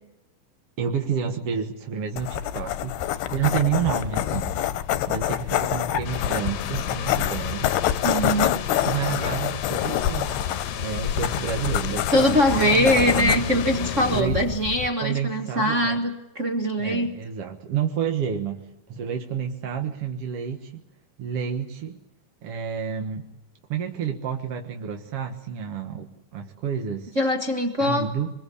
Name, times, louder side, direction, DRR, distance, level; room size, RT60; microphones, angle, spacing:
voice 1, 0.8-4.5 5.1-7.7 8.8-10.3 10.8-13.4 14.1-14.4 15.0-16.0 16.8-18.6 18.9-20.8 21.2-22.0 22.4-23.3 23.7-26.1 26.3-27.1 27.8-28.3, right 7 dB, 50° right, 3 dB, 1.9 m, -29 dB
sound 1, 2.2-14.9, left 11 dB, 85° left, 3.1 m, -27 dB
sound 2, 6.0-14.2, left 8 dB, 65° left, 2.1 m, -33 dB
voice 2, 8.0-8.6 12.1-17.1 27.1-28.1, equal, 75° right, 3 dB, 0.6 m, -22 dB
25.5 x 23.0 x 8.5 m, 0.91 s
omnidirectional pair, 4.4 m